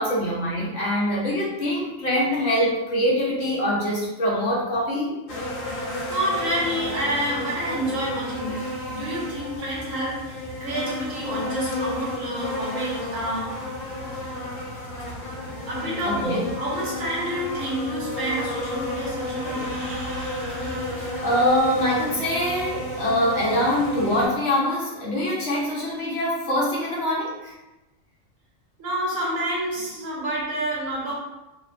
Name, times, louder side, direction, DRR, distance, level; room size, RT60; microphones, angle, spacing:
voice 1, 0.0-5.2 16.0-16.5 21.2-27.5, equal, 60° left, -5 dB, 0.9 m, -24 dB
sound 1, 5.3-24.3, left 1 dB, 85° left, 1.1 m, -32 dB
voice 2, 6.1-13.6 15.7-21.3 28.8-31.1, right 1 dB, 80° right, -5 dB, 1.3 m, -29 dB
2.8 x 2.1 x 2.5 m, 1.0 s
omnidirectional pair, 1.4 m